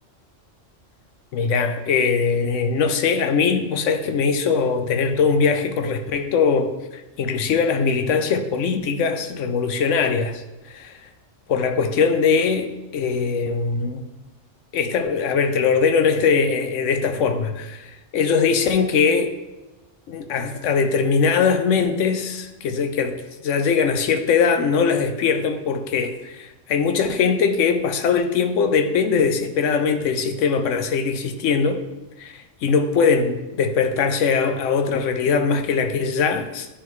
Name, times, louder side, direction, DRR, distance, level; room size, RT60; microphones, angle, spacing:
voice 1, 1.3-6.7 7.2-10.4 10.7-11.0 11.5-14.1 14.7-19.3 20.1-31.8 32.2-36.7, left 5 dB, 80° left, 7 dB, 0.9 m, -21 dB
9.8 x 3.6 x 3.1 m, 1.0 s
omnidirectional pair, 1.3 m